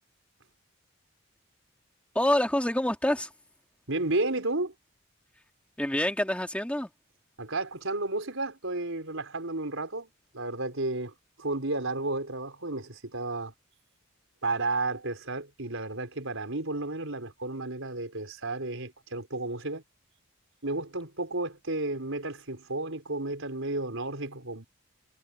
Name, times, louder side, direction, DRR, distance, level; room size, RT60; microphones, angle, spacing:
voice 1, 2.1-3.3 5.8-6.9, left 1 dB, 5° left, 2.2 m, -26 dB
voice 2, 3.9-4.7 7.4-10.1 10.3-13.5 14.4-19.8 20.6-24.6, right 2 dB, 70° right, 4.4 m, -32 dB
head